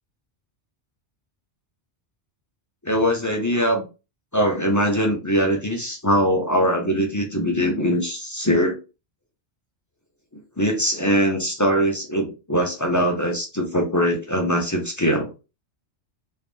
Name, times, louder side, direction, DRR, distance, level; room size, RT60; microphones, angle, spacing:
voice 1, 2.8-3.8 4.3-8.8 10.6-15.3, equal, 20° left, 2 dB, 0.5 m, -22 dB
3.0 x 2.7 x 3.4 m, 0.30 s
omnidirectional pair, 1.2 m